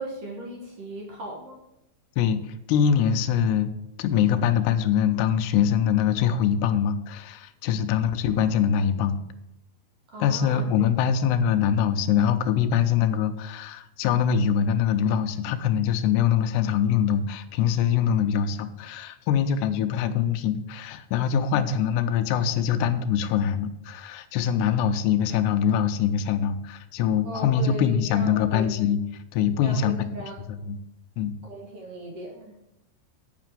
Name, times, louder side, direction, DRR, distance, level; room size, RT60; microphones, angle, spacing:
voice 1, 0.0-1.6 10.1-10.6 11.0-11.1 27.2-28.7 29.6-30.4 31.4-32.6, equal, 70° right, 0 dB, 1.5 m, -37 dB
voice 2, 2.2-3.7 4.0-9.2 10.2-29.0 29.3-30.0 30.7-30.8 31.2-31.3, left 8 dB, 80° left, 9 dB, 2.7 m, -23 dB
8.7 x 5.9 x 7.5 m, 0.90 s
omnidirectional pair, 4.9 m